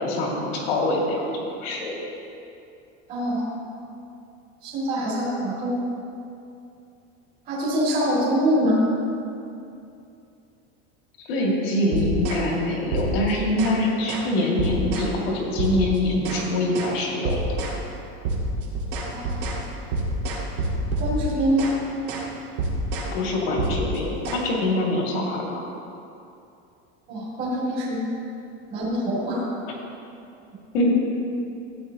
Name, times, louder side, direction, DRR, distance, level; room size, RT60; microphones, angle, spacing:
voice 1, 0.0-1.9 11.2-17.6 23.1-25.6 30.7-30.9, left 1 dB, 70° left, -2 dB, 2.3 m, -24 dB
voice 2, 3.1-3.5 4.6-5.7 7.5-8.8 19.1-19.4 21.0-21.7 27.1-28.0 28.7-29.4, equal, 30° right, -10 dB, 2.5 m, -24 dB
sound 1, 11.9-12.5 12.9-13.8 14.1-14.3 14.6-15.1 15.6-16.5 16.7-17.0 17.2-17.8 18.2-21.8 22.1-22.3 22.6-23.1 23.6-24.4, right 1 dB, 60° right, 1.9 m, -28 dB
14.0 x 9.0 x 2.9 m, 2.6 s
cardioid pair, 175°, 31 cm